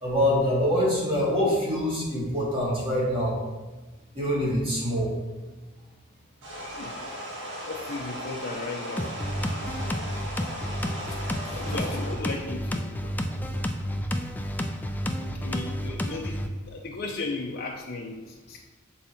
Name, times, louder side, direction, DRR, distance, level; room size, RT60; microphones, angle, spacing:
voice 1, 0.0-3.4 4.1-5.1, equal, 25° right, -5 dB, 2.0 m, -25 dB
sound 1, 6.4-12.3, equal, 60° right, 1.5 m, -37 dB
voice 2, 7.6-9.1 9.7-9.9 11.1-13.4 14.1-14.2 15.4-18.6, left 3 dB, 50° left, -2 dB, 0.6 m, -36 dB
sound 2, 9.0-16.5, equal, 10° left, 0.4 m, -31 dB
7.1 x 4.1 x 4.4 m, 1.2 s
head